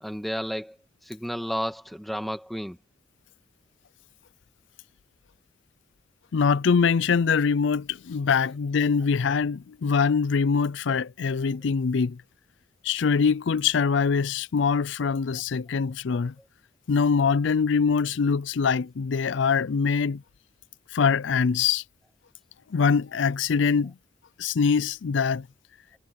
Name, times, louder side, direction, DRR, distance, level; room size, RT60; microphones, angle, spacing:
voice 1, 0.0-0.7 1.0-2.8, equal, ahead, 1.6 m, -32 dB
voice 2, 6.3-12.2 12.8-16.3 16.9-20.2 20.9-21.8 22.7-23.9 24.4-25.5, left 5 dB, 70° left, 0.4 m, -23 dB
head